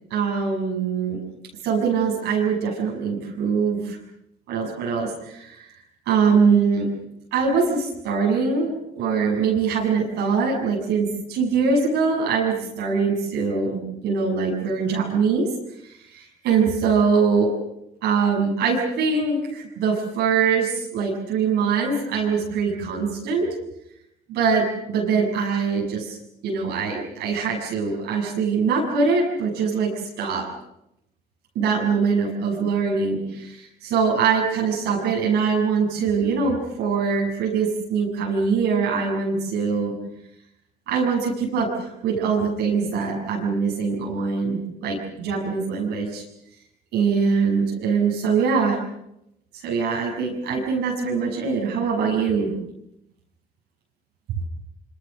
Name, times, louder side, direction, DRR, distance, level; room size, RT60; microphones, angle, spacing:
voice 1, 0.1-1.2 1.6-4.0 4.5-5.7 6.1-6.9 7.3-15.5 15.9-17.5 18.0-23.5 24.3-26.2 26.4-29.9 30.2-30.5 31.6-40.0 40.9-46.2 46.9-48.8 49.5-52.5, right 5 dB, 80° right, -2 dB, 7.0 m, -23 dB
27.5 x 25.0 x 6.6 m, 0.83 s
cardioid pair, 110°, 17 cm